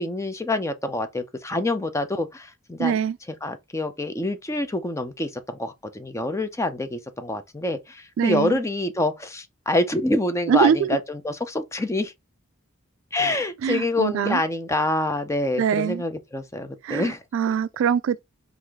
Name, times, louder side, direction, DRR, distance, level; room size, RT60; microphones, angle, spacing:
voice 1, 0.0-3.0 3.4-12.1 13.1-17.2, left 2 dB, 15° left, 0.5 m, -26 dB
voice 2, 2.8-3.2 8.2-8.6 10.5-11.0 13.6-14.4 15.6-16.0 16.8-18.2, right 7 dB, 70° right, 0.3 m, -23 dB
4.7 x 2.5 x 3.5 m
head